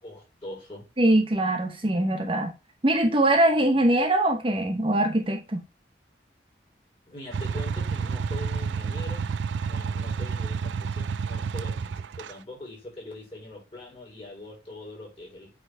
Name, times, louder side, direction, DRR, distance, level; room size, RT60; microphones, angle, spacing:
voice 1, 0.0-0.8 7.0-9.3 9.7-15.5, left 1 dB, 30° left, 3.7 m, -42 dB
voice 2, 1.0-2.5 2.8-5.6, right 1 dB, 30° right, 0.9 m, -22 dB
sound 1, 7.3-12.3, right 5 dB, 85° right, 0.4 m, -30 dB
8.3 x 3.9 x 3.3 m
head